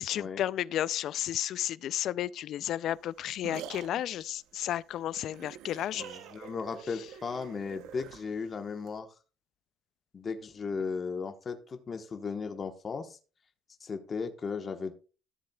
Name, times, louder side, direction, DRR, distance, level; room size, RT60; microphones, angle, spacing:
voice 1, 0.0-6.0, left 11 dB, 65° left, 0.3 m, -32 dB
sound 1, 2.9-9.0, right 10 dB, 85° right, 0.8 m, -47 dB
voice 2, 5.9-9.1 10.1-13.2 13.8-14.9, left 5 dB, 35° left, 1.1 m, -36 dB
14.0 x 7.5 x 2.3 m
cardioid pair, 115°, 0 cm